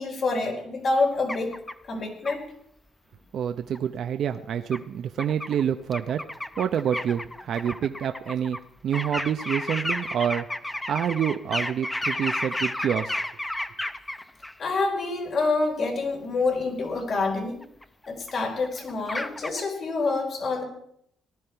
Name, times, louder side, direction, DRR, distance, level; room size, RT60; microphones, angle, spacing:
voice 1, 0.0-1.5 1.9-2.4 14.6-17.6 18.1-20.6, left 3 dB, 55° left, 2 dB, 4.4 m, -27 dB
sound 1, 1.3-1.7 2.2-2.3 3.7-3.8 4.7-4.8 5.2-5.6 5.9-8.6 8.9-14.5 17.0-17.1 17.6-18.3 18.6-19.6, left 1 dB, 10° left, 0.7 m, -32 dB
voice 2, 3.3-6.2 6.6-8.6 8.8-10.5 10.9-13.2, right 8 dB, 65° right, 7 dB, 0.6 m, -27 dB
18.5 x 12.5 x 4.5 m, 0.71 s
cardioid pair, 90°, 0 cm